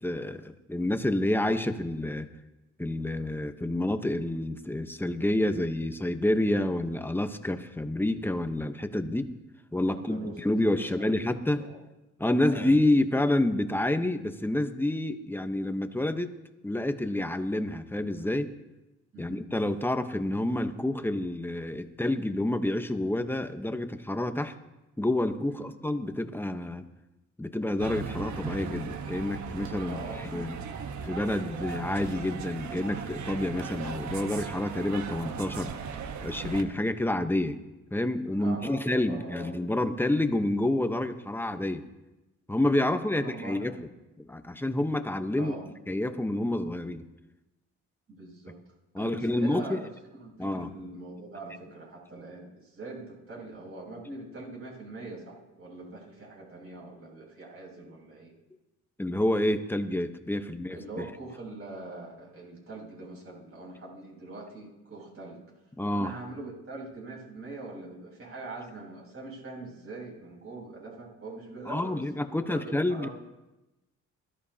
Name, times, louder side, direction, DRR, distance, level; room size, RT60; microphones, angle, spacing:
voice 1, 0.0-2.3 2.8-9.3 9.7-11.6 12.2-16.3 16.6-18.5 19.2-24.5 25.0-26.8 27.4-30.5 31.0-35.7 36.2-37.6 37.9-41.8 42.5-43.9 44.2-45.5 45.9-47.0 48.9-49.8 50.4-50.7 59.0-61.0 65.8-66.1 71.7-73.1, left 1 dB, 5° left, 8 dB, 1.0 m, -28 dB
voice 2, 9.9-10.4 10.8-11.1 11.5-11.8 12.4-12.7 19.1-19.4 25.6-25.7 29.8-30.2 38.4-39.5 43.1-43.8 45.3-45.6 48.1-48.6 49.0-49.8 50.1-58.3 60.4-65.4 65.9-72.0 72.3-73.1, right 2 dB, 45° right, -2 dB, 6.6 m, -43 dB
sound 1, 27.8-36.6, right 6 dB, 70° right, 1.3 m, -37 dB
22.5 x 13.5 x 2.8 m, 1.0 s
cardioid pair, 90°, 30 cm